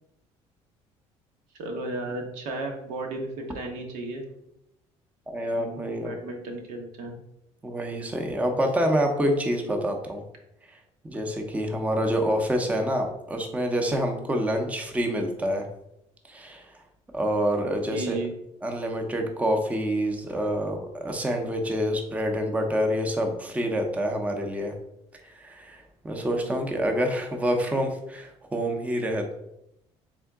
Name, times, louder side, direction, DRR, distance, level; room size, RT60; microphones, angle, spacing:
voice 1, 1.5-4.2 5.5-7.1 17.9-18.3, right 2 dB, 85° right, 2 dB, 1.0 m, -34 dB
voice 2, 5.3-6.2 7.6-10.2 10.7-10.8 11.0-15.7 16.3-16.8 17.1-18.2 18.6-24.7 25.2-29.3, equal, 10° right, 3 dB, 0.6 m, -27 dB
3.6 x 3.6 x 3.5 m, 0.81 s
cardioid pair, 115°, 13 cm